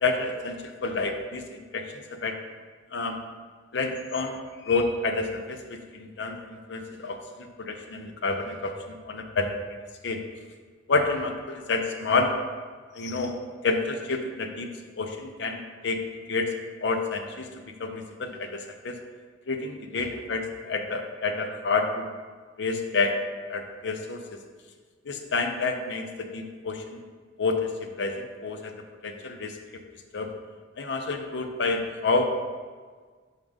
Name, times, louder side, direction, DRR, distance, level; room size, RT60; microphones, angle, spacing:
voice 1, 0.0-2.4 2.9-3.2 3.7-9.6 10.0-10.2 10.9-12.4 12.9-14.7 15.0-16.0 16.3-16.5 16.8-19.0 19.5-22.1 22.6-23.2 23.5-24.2 25.1-27.0 27.4-28.7 29.0-29.6 30.1-30.3 30.8-32.4, left 3 dB, 60° left, 5 dB, 0.6 m, -29 dB
5.3 x 3.6 x 5.2 m, 1.5 s
head